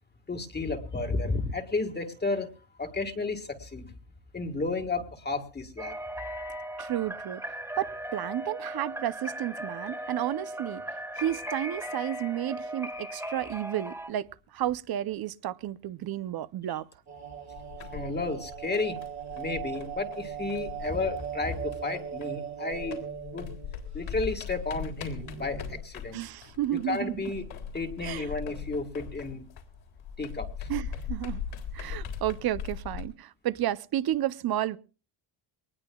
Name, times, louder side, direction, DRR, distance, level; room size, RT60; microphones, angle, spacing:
voice 1, 0.3-2.5 2.8-3.8 4.3-5.9 17.9-19.0 19.4-23.0 23.3-23.5 23.9-26.2 26.9-27.4 27.7-29.4 30.2-30.7, left 3 dB, 20° left, 1.6 m, -32 dB
sound 1, 5.8-14.1, right 1 dB, 5° right, 1.7 m, -38 dB
voice 2, 6.8-10.8 11.2-16.9 26.1-27.3 28.0-28.3 30.7-31.4 31.7-34.8, right 12 dB, 50° right, 0.6 m, -32 dB
sound 2, 17.1-24.0 24.3-24.4 25.0-25.8, right 9 dB, 35° right, 1.4 m, -39 dB
sound 3, 17.5-22.4 22.7-33.0, left 7 dB, 80° left, 3.8 m, -40 dB
23.0 x 19.5 x 2.3 m
cardioid pair, 135°, 47 cm